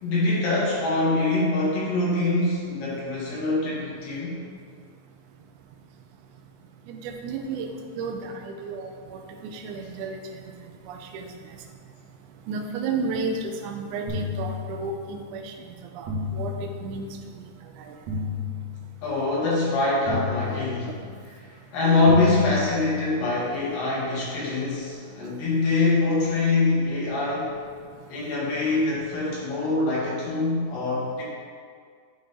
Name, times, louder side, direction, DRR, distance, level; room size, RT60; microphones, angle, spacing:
voice 1, 0.0-4.4 19.0-20.9 21.7-27.5 28.1-31.2, left 2 dB, 80° left, -6 dB, 3.3 m, -24 dB
voice 2, 6.9-7.7 8.0-10.2 10.9-11.3 12.5-15.5 16.0-17.1 17.8-17.9, right 4 dB, 80° right, 2 dB, 1.9 m, -32 dB
sound 1, 14.1-15.3 16.1-17.3 18.1-19.3 20.1-21.3 22.1-23.3, left 4 dB, 60° right, 2.2 m, -33 dB
9.8 x 4.0 x 3.8 m, 2.1 s
omnidirectional pair, 3.9 m